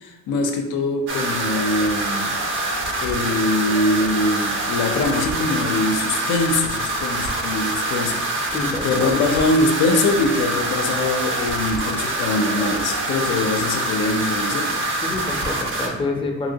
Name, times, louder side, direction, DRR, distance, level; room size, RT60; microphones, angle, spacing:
voice 1, 0.0-2.4 3.0-8.2 8.8-14.7, left 2 dB, 80° left, 4 dB, 0.5 m, -22 dB
sound 1, 1.1-15.9, right 2 dB, 40° right, 0.6 m, -25 dB
voice 2, 8.5-9.2 15.0-16.5, left 2 dB, 20° left, 1 dB, 0.5 m, -27 dB
2.8 x 2.8 x 2.7 m, 0.98 s
cardioid pair, 90°, 30 cm